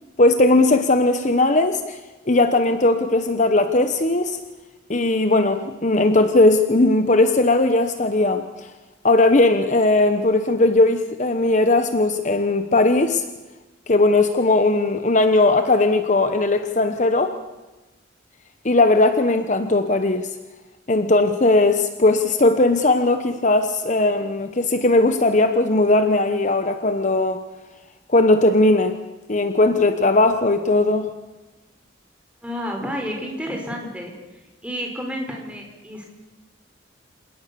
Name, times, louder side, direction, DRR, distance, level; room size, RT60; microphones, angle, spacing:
voice 1, 0.2-2.0 2.3-4.4 4.9-8.7 9.0-13.3 13.9-17.3 18.6-20.3 20.9-27.4 28.1-29.0 29.3-31.1, left 2 dB, 40° left, 9 dB, 1.0 m, -18 dB
voice 2, 32.4-34.1 34.6-36.1, equal, 5° right, 1 dB, 4.9 m, -30 dB
27.5 x 18.0 x 7.0 m, 1.1 s
head